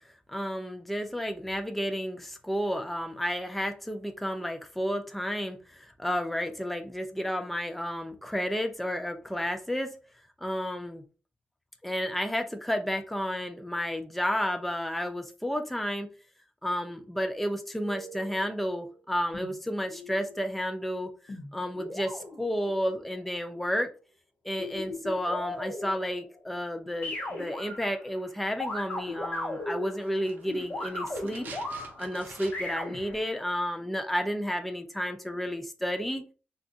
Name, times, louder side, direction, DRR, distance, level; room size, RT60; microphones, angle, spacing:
voice 1, 0.3-9.9 10.4-11.0 11.8-16.1 16.6-23.9 24.4-31.5 32.0-36.2, equal, 5° left, 6 dB, 0.3 m, -31 dB
sound 1, 17.7-18.5 19.3-20.4 21.3-23.3 24.6-26.5 27.0-28.3 28.6-33.4, left 2 dB, 50° left, 1.1 m, -38 dB
sound 2, 30.0-32.9 33.1-33.2, right 5 dB, 60° right, 0.6 m, -47 dB
2.5 x 2.3 x 3.8 m, 0.36 s
wide cardioid pair, 175°, 4 cm